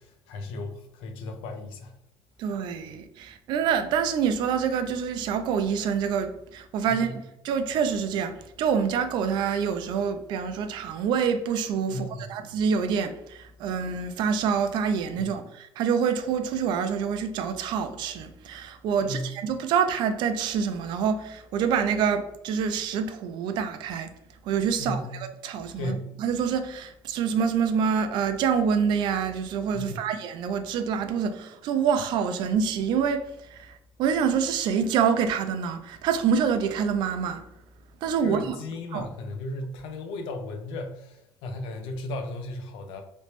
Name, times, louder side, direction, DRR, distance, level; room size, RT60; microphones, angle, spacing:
voice 1, 0.0-1.9 6.9-7.2 11.9-12.4 15.2-15.3 19.0-19.3 24.8-25.2 25.8-26.1 29.7-30.1 38.2-43.0, left 1 dB, 85° left, 0.6 m, -35 dB
voice 2, 2.4-7.1 7.4-24.1 24.5-25.1 25.4-33.2 33.5-33.7 34.0-37.4 38.0-38.6 38.9-39.1, right 7 dB, 55° right, 0.4 m, -26 dB
3.2 x 2.9 x 2.9 m
cardioid pair, 165°, 9 cm